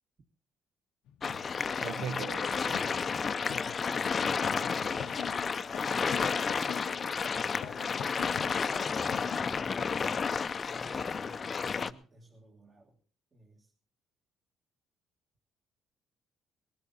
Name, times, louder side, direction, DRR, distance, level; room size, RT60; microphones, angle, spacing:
sound 1, 1.1-9.4, left 10 dB, 75° left, 0.7 m, -45 dB
sound 2, 1.2-11.9, left 5 dB, 30° left, 0.6 m, -31 dB
voice 1, 1.8-2.9, right 7 dB, 75° right, 0.9 m, -39 dB
voice 2, 4.8-5.5 7.1-8.0 8.4-9.9 10.6-13.0 13.3-13.7, right 1 dB, 25° right, 1.8 m, -54 dB
19.5 x 13.0 x 4.2 m
cardioid pair, 135°, 0 cm